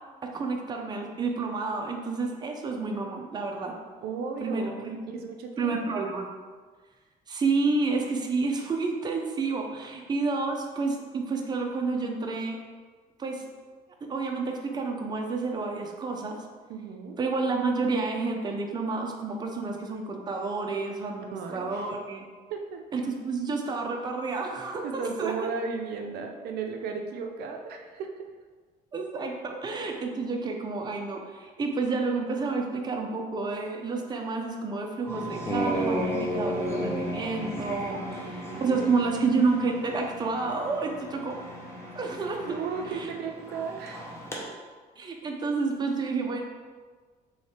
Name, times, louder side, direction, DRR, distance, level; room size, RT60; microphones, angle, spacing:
voice 1, 0.2-3.8 4.4-5.0 5.6-6.3 7.3-12.6 13.2-13.4 14.0-16.4 17.2-22.3 22.9-25.3 28.9-41.4 41.9-42.4 42.9-43.1 45.0-46.4, right 4 dB, 25° right, 2 dB, 0.5 m, -30 dB
voice 2, 4.0-5.8 16.7-17.2 21.3-21.9 22.5-22.9 24.8-28.1 37.9-39.1 42.4-44.1, right 5 dB, 70° right, 3 dB, 0.5 m, -35 dB
sound 1, 35.1-44.4, equal, 15° left, 0.8 m, -34 dB
3.2 x 3.2 x 4.2 m, 1.5 s
cardioid pair, 110°, 17 cm